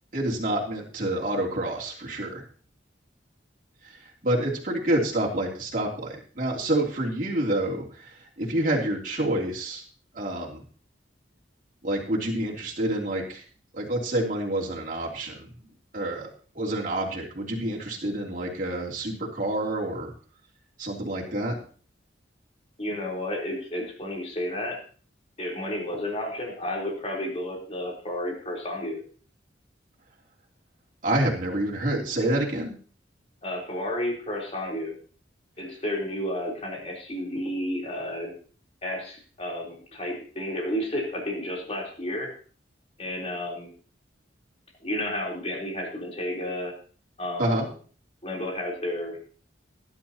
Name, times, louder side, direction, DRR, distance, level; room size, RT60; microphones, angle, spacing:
voice 1, 0.1-2.4 3.8-9.8 10.1-10.6 11.8-13.4 13.7-15.5 15.9-16.3 16.5-20.1 20.8-21.5 31.0-32.7 47.4-47.7, right 1 dB, 45° right, -4 dB, 3.2 m, -28 dB
voice 2, 22.8-24.8 25.4-29.0 33.4-34.9 35.6-38.3 38.8-42.3 43.0-43.7 44.8-46.7 47.2-47.7 48.2-49.2, left 1 dB, 30° left, -1 dB, 3.7 m, -31 dB
19.0 x 11.0 x 2.9 m, 0.42 s
head